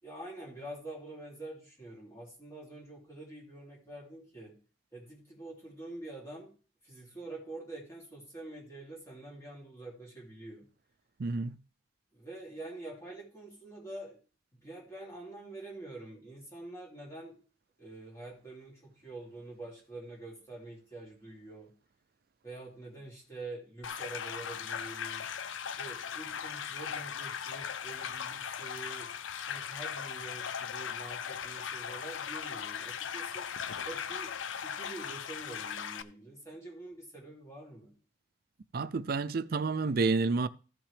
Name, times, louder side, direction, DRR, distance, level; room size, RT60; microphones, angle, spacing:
voice 1, 0.0-4.6 4.9-6.5 6.8-10.6 12.1-14.2 14.5-17.4 17.8-21.7 22.4-25.2 25.8-29.1 29.5-33.5 33.8-37.9, right 2 dB, 15° left, 2.9 m, -46 dB
voice 2, 11.2-11.6 38.7-40.5, right 3 dB, 50° right, 0.4 m, -29 dB
sound 1, 23.8-36.0, left 7 dB, 85° left, 0.6 m, -38 dB
14.5 x 6.1 x 3.3 m
head